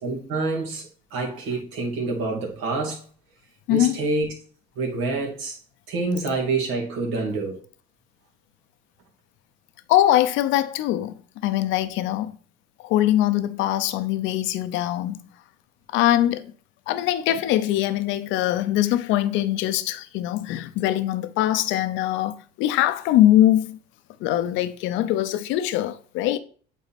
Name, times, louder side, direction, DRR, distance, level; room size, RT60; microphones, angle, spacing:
voice 1, 0.0-3.0 3.7-4.3 4.8-5.6 5.9-7.6, right 3 dB, 80° right, 2.4 m, -27 dB
voice 2, 3.7-4.0 9.9-11.1 11.4-12.3 12.8-15.2 15.9-16.5 16.9-23.8 24.2-26.4, left 13 dB, 75° left, 0.7 m, -22 dB
8.2 x 4.1 x 4.2 m
supercardioid pair, 100°, 20 cm